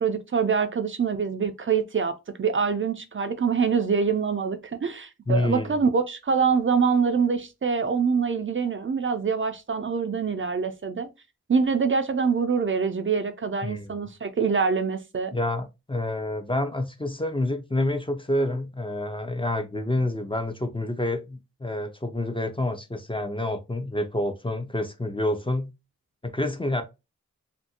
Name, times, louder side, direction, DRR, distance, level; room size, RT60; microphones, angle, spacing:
voice 1, 0.0-11.1 11.5-15.4, right 5 dB, 45° right, 0.4 m, -25 dB
voice 2, 5.3-5.8 13.6-13.9 15.3-25.7 26.2-26.8, left 1 dB, 20° left, 0.5 m, -28 dB
2.6 x 2.6 x 2.6 m
wide cardioid pair, 55°, 29 cm